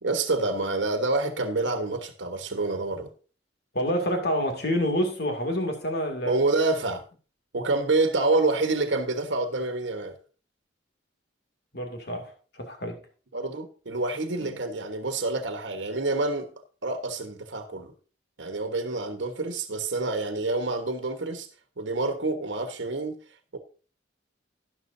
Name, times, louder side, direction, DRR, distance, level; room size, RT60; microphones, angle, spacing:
voice 1, 0.0-3.1 6.2-7.0 7.5-10.1 13.3-16.5 16.8-17.9 18.4-21.5 21.8-23.1 23.5-23.6, right 2 dB, 80° right, 1.2 m, -27 dB
voice 2, 3.7-6.3 11.7-13.0 14.4-14.5, equal, 60° left, 2.4 m, -28 dB
12.0 x 11.0 x 2.7 m
head